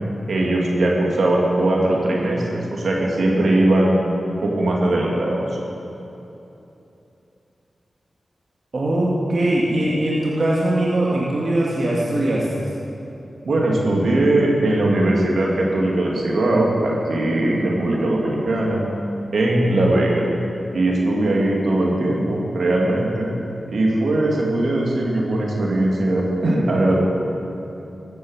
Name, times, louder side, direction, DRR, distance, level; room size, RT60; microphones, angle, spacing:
voice 1, 0.3-4.0 4.4-5.5 13.4-18.8 19.3-20.3 20.7-23.3 23.7-26.9, right 1 dB, 75° right, -2 dB, 2.5 m, -20 dB
voice 2, 8.7-12.7, right 1 dB, 60° right, -5 dB, 2.1 m, -21 dB
15.0 x 9.4 x 6.5 m, 2.9 s
cardioid pair, 50°, 0 cm